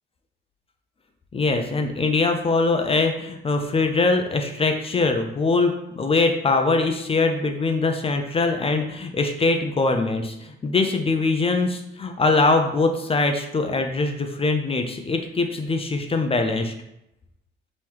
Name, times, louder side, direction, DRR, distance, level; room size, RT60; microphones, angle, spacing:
voice 1, 1.3-16.7, left 3 dB, 30° left, 5 dB, 0.5 m, -22 dB
3.6 x 3.1 x 4.5 m, 0.83 s
cardioid pair, 90°, 20 cm